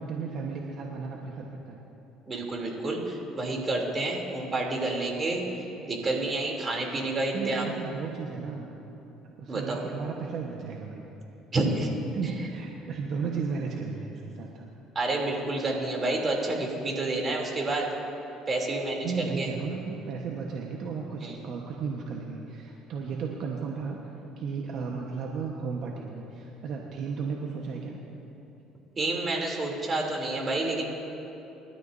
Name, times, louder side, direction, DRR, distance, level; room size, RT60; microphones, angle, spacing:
voice 1, 0.0-1.8 7.3-8.7 9.4-11.0 12.1-14.7 19.0-28.0, right 5 dB, 60° right, 0 dB, 1.3 m, -34 dB
voice 2, 2.3-5.4 5.8-7.7 9.5-9.8 11.5-11.9 12.2-12.3 14.9-17.9 18.5-19.5 21.2-21.3 29.0-30.9, right 2 dB, 30° right, 0 dB, 3.2 m, -29 dB
25.5 x 13.0 x 2.8 m, 3.0 s
supercardioid pair, 90°, 0 cm